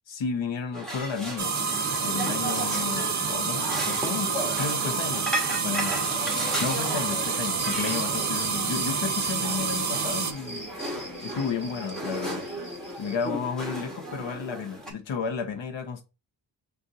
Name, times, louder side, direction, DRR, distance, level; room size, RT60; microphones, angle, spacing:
voice 1, 0.1-1.5 2.0-6.3 6.6-10.6 11.2-12.5 13.0-16.0, left 6 dB, 90° left, 1.0 m, -32 dB
sound 1, 0.7-14.9, right 1 dB, ahead, 1.4 m, -35 dB
sound 2, 1.4-10.3, right 5 dB, 40° right, 0.6 m, -28 dB
sound 3, 7.6-13.3, right 1 dB, 25° left, 1.8 m, -42 dB
6.7 x 2.6 x 2.5 m
wide cardioid pair, 130°, 44 cm